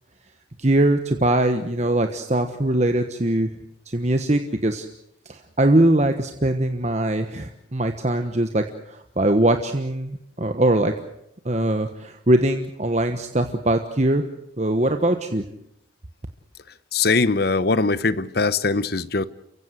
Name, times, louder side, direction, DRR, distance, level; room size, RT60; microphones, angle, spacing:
voice 1, 0.6-3.5 3.9-4.9 5.2-10.9 11.4-14.2 14.6-15.4, right 1 dB, 35° right, 1.2 m, -21 dB
voice 2, 16.9-19.2, left 3 dB, 55° left, 0.9 m, -21 dB
29.5 x 16.0 x 8.0 m
head